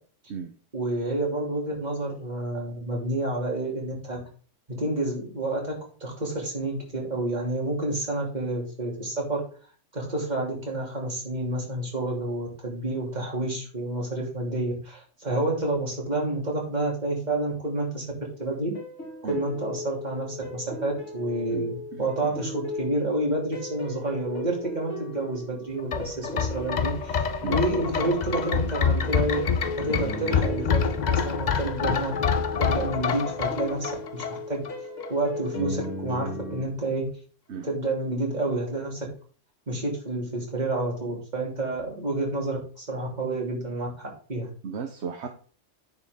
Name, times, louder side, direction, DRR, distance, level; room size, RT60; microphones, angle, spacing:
voice 1, 0.7-4.2 4.8-5.7 6.0-9.4 9.9-18.1 18.4-18.7 19.2-29.4 29.8-32.1 32.6-34.6 35.1-37.0 37.6-39.1 39.7-44.5, right 2 dB, 35° right, -2 dB, 2.9 m, -29 dB
sound 1, 18.7-36.6, left 1 dB, 75° left, 2.9 m, -37 dB
voice 2, 21.5-22.4 27.4-27.6 32.8-32.9 37.5-37.7 44.6-45.3, right 6 dB, 65° right, 5 dB, 1.2 m, -36 dB
sound 2, 25.8-34.7 35.0-35.1, left 6 dB, 45° left, 0.6 m, -27 dB
9.3 x 5.9 x 3.6 m, 0.40 s
omnidirectional pair, 1.3 m